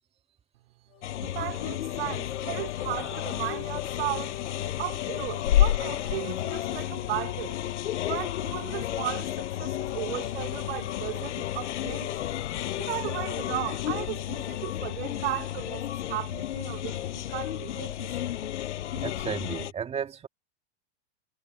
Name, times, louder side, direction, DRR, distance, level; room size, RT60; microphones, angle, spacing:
sound 1, 0.9-15.6, left 15 dB, 30° left, 1.7 m, -41 dB
sound 2, 1.0-19.7, left 12 dB, 85° left, 6.4 m, -31 dB
voice 1, 1.2-4.3 4.8-7.6 8.0-12.1 12.8-18.3, right 18 dB, 65° right, 4.6 m, -35 dB
voice 2, 19.0-20.3, right 7 dB, 15° right, 2.1 m, -33 dB
supercardioid pair, 150°, 35 cm